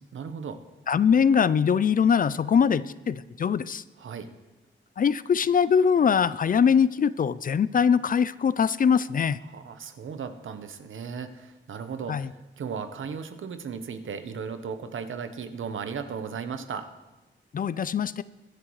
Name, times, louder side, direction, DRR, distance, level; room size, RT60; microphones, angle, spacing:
voice 1, 0.1-0.6 4.0-4.3 9.5-16.9, right 6 dB, 80° right, 9 dB, 0.9 m, -36 dB
voice 2, 0.9-3.8 5.0-9.4 12.1-12.3 17.5-18.2, left 7 dB, 45° left, 17 dB, 0.4 m, -22 dB
21.5 x 10.0 x 3.1 m, 1.1 s
wide cardioid pair, 95°, 20 cm